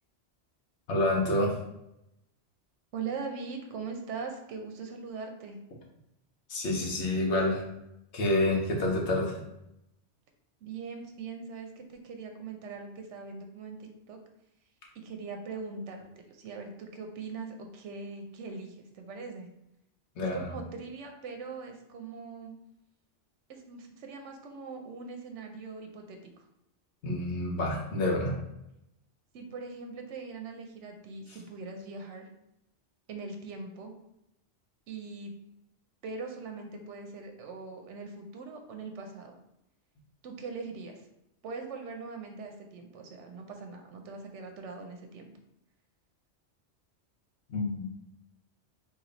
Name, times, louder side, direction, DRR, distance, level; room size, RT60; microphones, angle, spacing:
voice 1, 0.9-1.6 6.5-7.6 8.1-9.4 20.2-20.5 27.0-28.4 47.5-47.9, left 1 dB, 70° left, -1 dB, 1.1 m, -28 dB
voice 2, 2.9-5.6 10.6-14.2 14.9-19.5 20.3-22.5 23.5-26.4 29.3-32.3 33.1-34.0 34.9-35.3 36.0-39.3 40.2-41.1 41.4-45.3, right 4 dB, 80° right, 4 dB, 0.9 m, -41 dB
3.3 x 2.6 x 3.8 m, 0.84 s
omnidirectional pair, 1.2 m